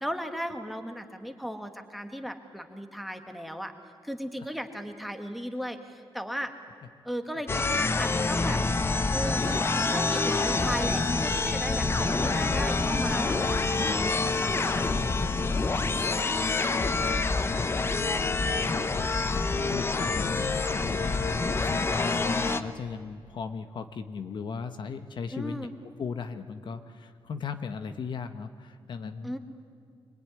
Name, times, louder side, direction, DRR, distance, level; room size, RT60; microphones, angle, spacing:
voice 1, 0.0-3.7 4.0-6.5 7.0-8.6 9.1-14.9 25.3-25.7 29.2-29.4, equal, ahead, 6 dB, 1.7 m, -36 dB
sound 1, 7.5-22.6, left 3 dB, 25° left, 0.9 m, -27 dB
voice 2, 16.5-20.5 20.9-25.7 26.0-29.3, left 5 dB, 55° left, 8 dB, 1.1 m, -38 dB
25.5 x 21.5 x 9.9 m, 2.3 s
wide cardioid pair, 165°, 9 cm